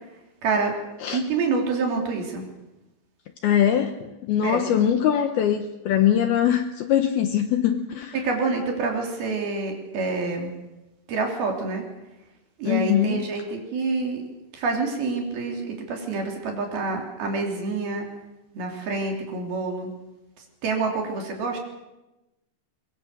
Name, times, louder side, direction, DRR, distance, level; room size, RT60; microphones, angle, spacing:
voice 1, 0.4-0.7 1.1-2.5 4.4-4.6 8.1-10.5 11.1-11.8 12.6-14.2 14.5-18.1 18.5-19.9 20.6-21.6, right 4 dB, 55° right, 2 dB, 4.9 m, -27 dB
voice 2, 3.4-8.2 12.7-13.2, left 10 dB, 75° left, 7 dB, 2.4 m, -22 dB
23.0 x 22.5 x 6.7 m, 1.0 s
omnidirectional pair, 5.4 m